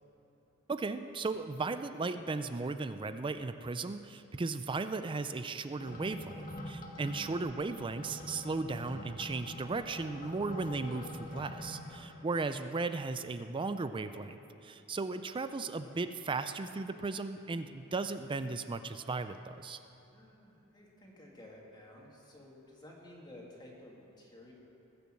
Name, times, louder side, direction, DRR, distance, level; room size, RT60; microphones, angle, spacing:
voice 1, 0.7-19.8, right 3 dB, 25° right, 10 dB, 0.4 m, -36 dB
sound 1, 5.8-12.0, left 1 dB, 40° left, 1.5 m, -45 dB
voice 2, 11.9-12.3 20.1-24.5, left 1 dB, 20° left, -3 dB, 2.3 m, -54 dB
20.5 x 6.8 x 7.7 m, 2.8 s
head